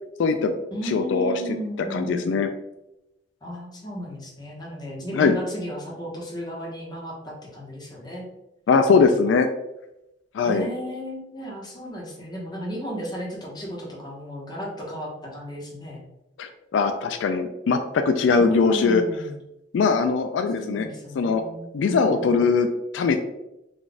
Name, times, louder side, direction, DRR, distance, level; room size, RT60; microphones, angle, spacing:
voice 1, 0.2-0.5 0.8-1.4 1.9-2.5 5.1-5.3 8.7-9.5 10.3-10.7 16.4-19.0 19.7-20.9 21.2-21.4 21.7-22.7 22.9-23.3, left 5 dB, 80° left, 7 dB, 0.3 m, -21 dB
voice 2, 0.7-2.4 3.4-8.2 10.4-16.0 18.4-19.4 20.6-22.4, equal, 25° left, -3 dB, 1.0 m, -34 dB
4.0 x 2.5 x 3.4 m, 0.90 s
head